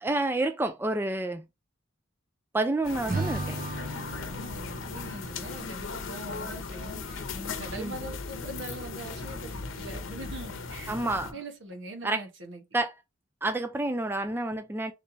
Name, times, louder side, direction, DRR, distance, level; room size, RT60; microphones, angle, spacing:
voice 1, 0.0-1.4 2.5-3.6 7.8-7.9 10.9-11.3 12.0-12.2 12.7-12.9 13.4-14.9, right 2 dB, 10° right, 0.3 m, -29 dB
sound 1, 2.8-11.3, left 4 dB, 80° left, 0.8 m, -37 dB
Acoustic guitar / Strum, 3.1-6.4, right 2 dB, 45° right, 1.0 m, -36 dB
voice 2, 3.9-11.0 11.3-12.6, right 2 dB, 65° right, 1.3 m, -42 dB
3.4 x 3.2 x 3.9 m
head